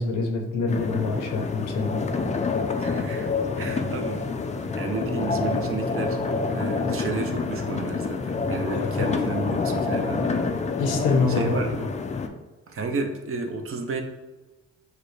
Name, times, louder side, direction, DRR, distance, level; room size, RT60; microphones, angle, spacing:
voice 1, 0.0-2.0 8.7-9.1 10.8-11.6, left 3 dB, 85° left, 4 dB, 0.8 m, -26 dB
sound 1, 0.7-12.3, left 4 dB, 25° left, 0.4 m, -27 dB
voice 2, 2.8-3.3 3.6-4.3 4.7-6.2 6.4-10.5 11.3-11.9 12.7-14.0, right 3 dB, 45° right, 4 dB, 0.7 m, -31 dB
6.5 x 2.2 x 3.2 m, 1.1 s
cardioid pair, 90°, 30 cm